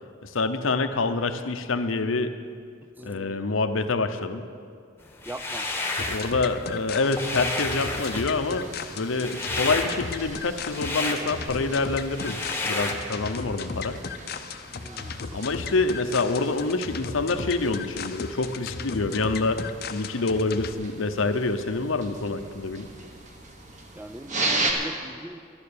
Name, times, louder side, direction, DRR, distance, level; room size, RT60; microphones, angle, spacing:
voice 1, 0.2-2.3 3.0-4.5 6.1-8.7 9.0-12.4 12.6-14.0 15.3-19.6 19.9-22.9, left 3 dB, 85° left, 9 dB, 0.8 m, -26 dB
voice 2, 3.0-3.5 5.3-5.7 14.8-15.3 24.0-25.4, right 2 dB, 10° right, 11 dB, 0.3 m, -41 dB
Sweeping on carpet, 5.2-6.3 6.7-12.9, left 2 dB, 10° left, 1.1 m, -31 dB
sound 1, 6.0-20.7, left 5 dB, 50° left, 0.6 m, -36 dB
sound 2, 7.0-24.7, right 2 dB, 40° right, 1.3 m, -38 dB
11.5 x 11.5 x 6.8 m, 2.2 s
head